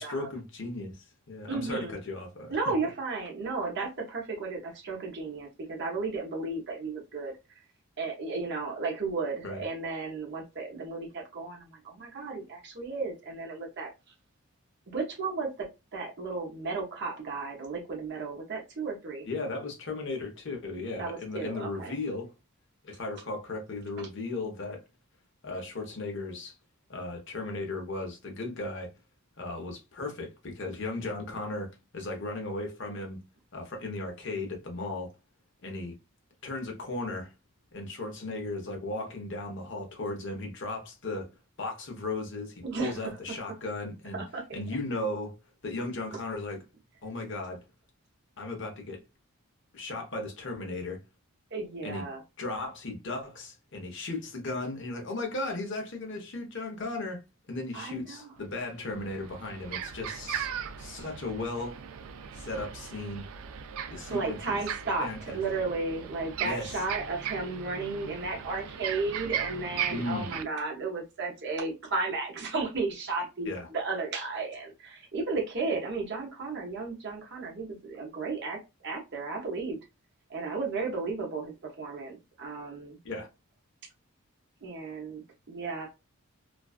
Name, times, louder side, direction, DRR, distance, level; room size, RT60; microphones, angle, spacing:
voice 1, 0.0-2.7 9.4-9.6 19.2-22.3 22.8-24.8 25.4-26.6 26.9-28.9 29.4-33.2 33.5-35.1 35.6-36.0 36.4-37.3 37.7-41.3 41.6-44.2 44.5-45.4 45.6-46.6 47.0-47.6 48.4-49.0 49.7-51.0 51.8-52.1 52.4-57.2 57.5-60.5 60.8-61.8 62.3-63.3 63.9-64.6 65.0-65.4 66.4-66.8 69.9-70.3 73.5-73.7 83.0-83.3, left 2 dB, 55° left, 0.8 m, -36 dB
voice 2, 1.5-1.9 2.5-7.3 8.0-13.9 14.9-15.7 15.9-19.3 21.0-21.9 31.2-31.3 42.6-43.1 44.1-44.6 51.5-52.2 57.7-58.3 64.1-79.8 80.3-83.0 84.6-85.9, right 3 dB, 50° right, 0.7 m, -34 dB
sound 1, 58.4-58.5 58.8-70.4, right 8 dB, 70° right, 0.3 m, -38 dB
2.5 x 2.2 x 2.4 m
head